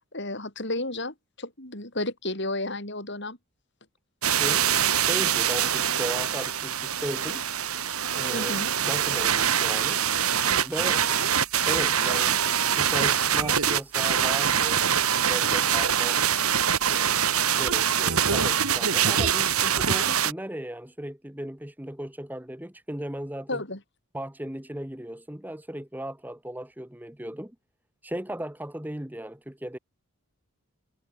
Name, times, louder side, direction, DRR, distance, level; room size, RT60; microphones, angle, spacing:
voice 1, 0.1-3.4 8.3-8.7 23.5-23.8, left 2 dB, 55° left, 7.1 m, -32 dB
sound 1, 4.2-20.3, right 8 dB, 85° right, 3.1 m, -24 dB
voice 2, 4.4-7.4 8.1-8.6 8.8-10.0 10.5-11.4 11.7-12.4 12.7-14.9 15.3-16.2 16.9-23.6 24.1-27.5 28.0-29.8, right 1 dB, 10° right, 1.3 m, -36 dB
head